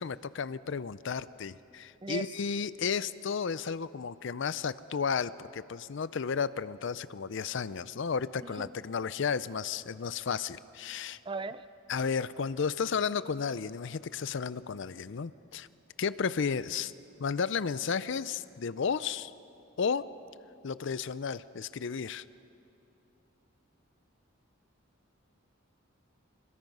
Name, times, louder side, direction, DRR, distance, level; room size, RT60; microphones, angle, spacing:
voice 1, 0.0-11.2 11.9-15.7 16.0-16.9 17.2-19.3 19.8-20.1 20.6-22.2, left 6 dB, 60° left, 16 dB, 0.5 m, -33 dB
voice 2, 8.4-8.7 11.2-11.7, right 4 dB, 25° right, 13 dB, 0.5 m, -38 dB
27.0 x 21.0 x 5.4 m, 2.8 s
head